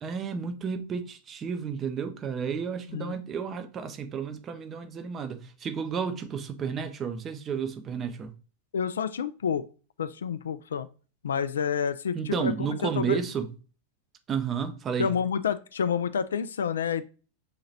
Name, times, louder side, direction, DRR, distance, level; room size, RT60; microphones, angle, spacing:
voice 1, 0.0-8.3 12.1-13.5 14.3-15.1, right 6 dB, 25° right, 0.6 m, -32 dB
voice 2, 8.7-9.6 10.0-10.9 11.2-13.2 15.0-17.0, left 7 dB, 65° left, 0.3 m, -29 dB
6.6 x 2.9 x 2.7 m
figure-of-eight pair, 90°, 0 cm